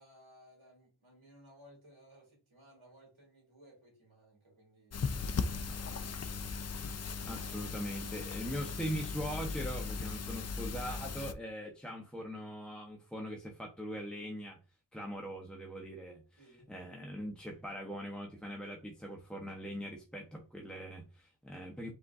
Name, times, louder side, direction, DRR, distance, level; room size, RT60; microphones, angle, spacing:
voice 1, 0.0-5.0 5.5-7.3 16.4-16.7 21.5-21.7, right 1 dB, 75° right, 2.6 m, -61 dB
sound 1, 4.9-11.3, left 4 dB, 35° left, 0.4 m, -38 dB
voice 2, 7.3-14.6 14.9-21.9, equal, ahead, 0.7 m, -41 dB
5.1 x 3.9 x 2.4 m
wide cardioid pair, 65°, 48 cm